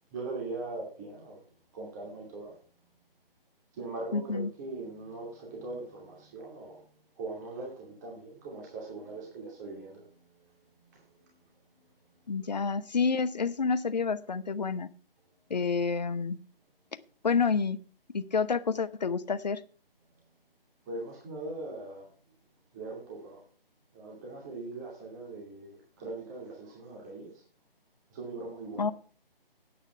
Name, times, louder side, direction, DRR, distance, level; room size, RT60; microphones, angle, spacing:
voice 1, 0.1-1.4 1.7-2.5 3.7-6.8 7.2-10.5 10.8-11.4 11.8-11.9 12.2-12.7 20.9-22.1 22.7-23.4 23.9-27.4 28.1-28.9, right 3 dB, 20° right, -2 dB, 2.5 m, -41 dB
voice 2, 4.1-4.5 12.3-14.9 15.5-16.4 17.2-17.8 18.1-19.6 28.8-28.9, left 5 dB, 45° left, 14 dB, 0.8 m, -28 dB
9.8 x 8.9 x 5.8 m, 0.41 s
figure-of-eight pair, 155°, 29 cm